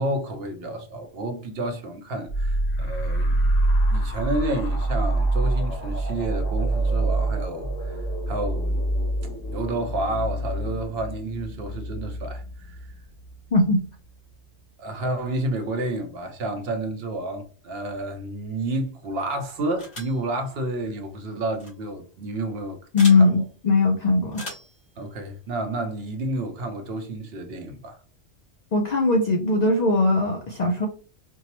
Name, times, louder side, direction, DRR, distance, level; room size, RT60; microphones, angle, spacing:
voice 1, 0.0-3.4 3.9-8.0 8.3-8.8 9.5-12.9 14.8-22.8 23.1-23.4 25.0-28.0, right 2 dB, 60° right, 0.8 m, -30 dB
sound 1, 2.3-13.6, right 2 dB, 90° left, 1.3 m, -26 dB
voice 2, 13.5-13.8 22.9-24.4 28.7-30.9, left 3 dB, 70° left, 0.4 m, -20 dB
sound 2, 19.8-20.2 21.5-21.7 23.0-23.2 24.3-24.8, left 1 dB, 55° left, 2.1 m, -37 dB
4.4 x 2.0 x 2.9 m
omnidirectional pair, 1.3 m